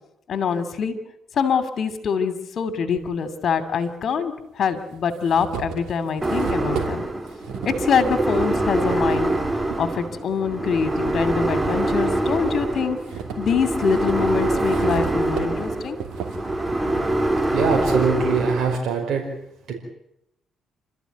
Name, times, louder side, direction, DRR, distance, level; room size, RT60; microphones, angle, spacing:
voice 1, 0.3-0.9 1.3-7.0 7.6-9.3 9.8-13.0 13.4-16.0, left 6 dB, 60° left, 11 dB, 2.8 m, -24 dB
sound 1, 3.0-3.1 4.1-4.2 4.7-9.8 10.4-11.6 12.0-18.1, right 7 dB, 90° right, 2.9 m, -36 dB
sound 2, 6.2-18.8, right 1 dB, 15° right, 2.0 m, -24 dB
voice 2, 17.5-19.3 19.7-19.8, right 5 dB, 65° right, 0 dB, 5.3 m, -23 dB
29.0 x 13.5 x 9.4 m, 0.82 s
cardioid pair, 90°, 0 cm